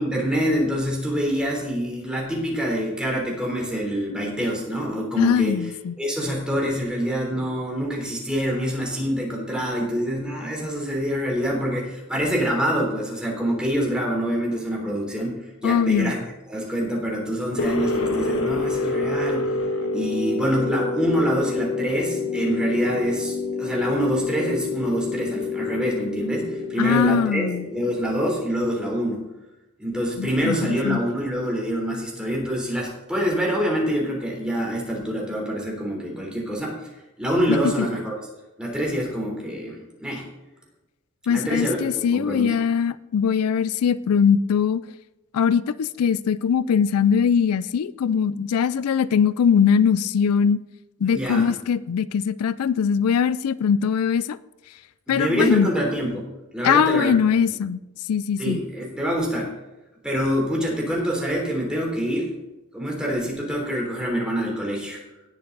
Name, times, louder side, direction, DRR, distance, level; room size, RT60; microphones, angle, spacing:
voice 1, 0.0-5.6 6.0-16.2 16.5-19.6 19.9-29.2 29.8-36.9 37.2-38.1 38.6-40.3 41.3-42.5 51.1-51.5 55.1-56.2 56.5-57.4 58.4-59.5 60.0-62.3 62.7-65.0, equal, 5° right, -2 dB, 3.4 m, -26 dB
voice 2, 5.2-6.0 15.6-16.1 26.8-27.7 30.2-31.0 37.5-37.9 41.3-44.8 45.3-50.6 51.0-54.4 55.1-55.7 56.6-57.8 58.1-58.6, left 7 dB, 85° left, 17 dB, 0.4 m, -21 dB
sound 1, 17.6-28.4, left 3 dB, 70° left, 1.4 m, -28 dB
18.0 x 6.9 x 4.0 m, 1.0 s
head